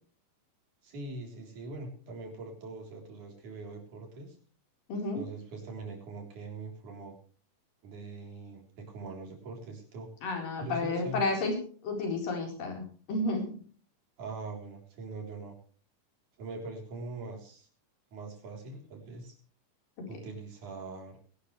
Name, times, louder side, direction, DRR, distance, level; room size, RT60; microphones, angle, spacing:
voice 1, 0.8-4.4 5.1-7.2 7.8-10.1 10.6-11.2 14.2-15.6 16.4-17.7 18.1-19.4 20.1-21.2, right 3 dB, 65° right, 2 dB, 5.1 m, -42 dB
voice 2, 4.9-5.2 10.2-11.6 11.8-13.5 20.0-20.1, left 2 dB, 85° left, 2 dB, 6.0 m, -31 dB
21.5 x 12.0 x 3.3 m, 0.43 s
omnidirectional pair, 3.8 m